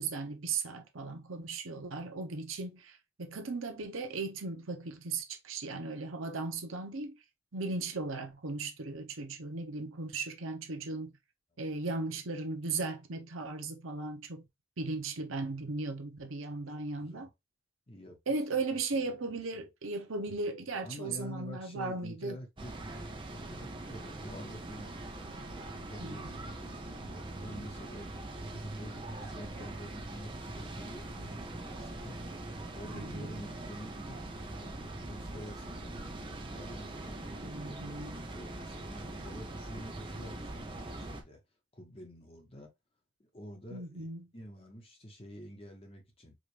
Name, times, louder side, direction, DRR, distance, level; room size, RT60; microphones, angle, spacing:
voice 1, 0.0-7.2 7.5-11.1 11.6-14.4 14.8-17.3 18.3-22.3 26.0-26.4 32.9-33.3 37.4-38.2 43.7-44.2, right 3 dB, 85° right, 0.9 m, -37 dB
voice 2, 17.0-17.3 17.9-18.2 18.5-19.4 20.8-22.7 23.3-28.3 28.5-32.2 32.7-37.9 38.2-41.4 41.7-42.7 43.2-44.1 44.3-46.3, equal, 30° left, 1.1 m, -48 dB
sound 1, 22.6-41.2, right 2 dB, 25° right, 0.6 m, -42 dB
5.0 x 2.5 x 3.2 m
head